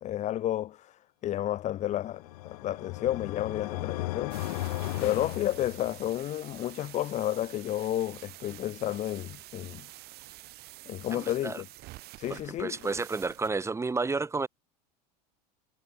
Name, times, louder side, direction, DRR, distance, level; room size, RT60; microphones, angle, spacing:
voice 1, 0.0-4.5 5.0-9.9 10.9-11.7 12.2-12.9, left 13 dB, 40° left, 0.7 m, -31 dB
sound 1, 1.9-6.2, left 19 dB, 85° left, 3.4 m, -36 dB
sound 2, 4.3-13.5, right 18 dB, 55° right, 6.8 m, -48 dB
voice 2, 11.1-11.6 12.3-14.5, right 4 dB, 15° right, 2.2 m, -31 dB
supercardioid pair, 115°, 19 cm